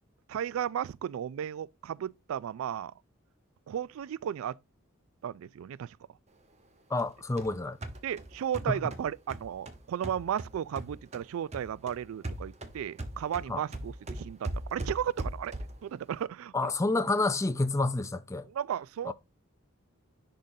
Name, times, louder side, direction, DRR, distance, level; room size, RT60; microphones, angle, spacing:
voice 1, 0.3-2.9 3.7-4.6 5.2-6.0 8.0-15.5 15.8-16.7 18.5-19.1, right 9 dB, 80° right, 0.3 m, -34 dB
voice 2, 6.9-7.8 8.7-8.8 13.5-13.6 16.5-18.5 19.0-19.1, left 2 dB, 15° left, 0.4 m, -29 dB
sound 1, 7.0-11.3 11.5-15.9, right 1 dB, 30° right, 0.9 m, -40 dB
10.5 x 3.7 x 2.6 m
head